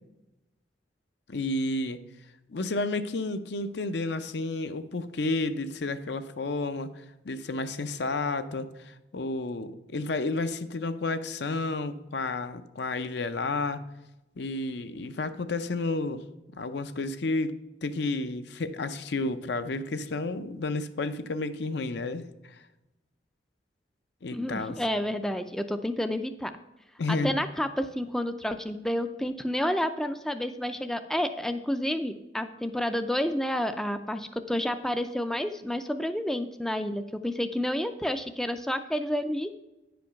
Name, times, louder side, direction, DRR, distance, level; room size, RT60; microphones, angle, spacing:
voice 1, 1.3-2.0 2.5-13.8 14.4-16.2 16.6-22.6 24.2-24.8 27.0-27.3, left 2 dB, 65° left, 10 dB, 0.6 m, -31 dB
voice 2, 24.3-26.5 27.1-39.5, equal, 5° left, 8 dB, 0.4 m, -30 dB
9.6 x 5.2 x 5.7 m, 0.98 s
head